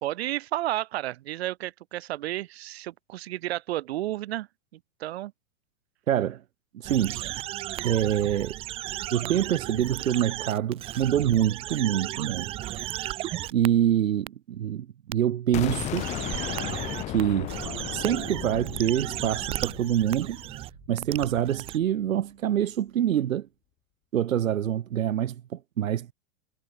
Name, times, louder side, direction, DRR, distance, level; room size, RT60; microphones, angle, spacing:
voice 1, 0.0-4.5 5.0-5.3, right 15 dB, 50° right, 3.6 m, -32 dB
voice 2, 6.1-6.4 6.8-7.3 7.8-8.6 9.1-12.5 13.5-16.1 17.1-17.5 17.9-20.4 20.9-23.5 24.1-26.1, right 10 dB, 85° right, 3.1 m, -25 dB
sound 1, 6.8-13.7 14.3-14.4 15.1-15.2 15.8-17.2 17.5-21.8, right 15 dB, 15° right, 0.9 m, -35 dB
sound 2, 15.5-21.3, left 15 dB, 15° left, 1.4 m, -36 dB
supercardioid pair, 170°, 39 cm